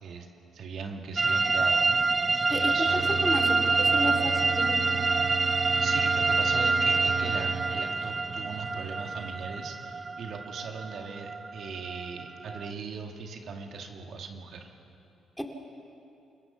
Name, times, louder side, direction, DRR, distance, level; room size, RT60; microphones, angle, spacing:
voice 1, 0.5-3.0 5.8-14.7, right 5 dB, 65° right, 3 dB, 2.0 m, -39 dB
sound 1, 1.2-12.7, right 3 dB, 30° right, 0.4 m, -27 dB
voice 2, 2.5-2.9 3.2-5.0 15.4-15.5, left 1 dB, 5° left, 2 dB, 2.5 m, -33 dB
sound 2, 2.8-9.3, right 6 dB, 80° right, 2.0 m, -36 dB
28.0 x 16.0 x 7.0 m, 2.7 s
cardioid pair, 90°, 0 cm